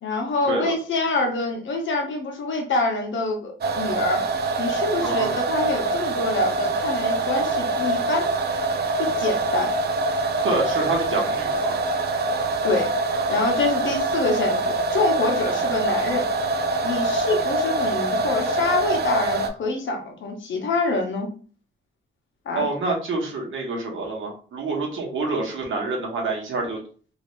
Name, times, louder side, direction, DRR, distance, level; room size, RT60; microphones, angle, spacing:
voice 1, 0.0-4.2 4.6-8.3 9.0-9.7 12.6-12.9 13.3-16.3 16.8-21.3 22.5-22.6, left 2 dB, 75° left, 2 dB, 0.9 m, -26 dB
sound 1, 3.6-19.5, right 2 dB, 55° right, 0.5 m, -24 dB
voice 2, 5.0-5.3 10.4-11.8 22.6-26.8, right 3 dB, 85° right, -1 dB, 1.1 m, -27 dB
2.7 x 2.5 x 3.1 m, 0.41 s
wide cardioid pair, 145°, 20 cm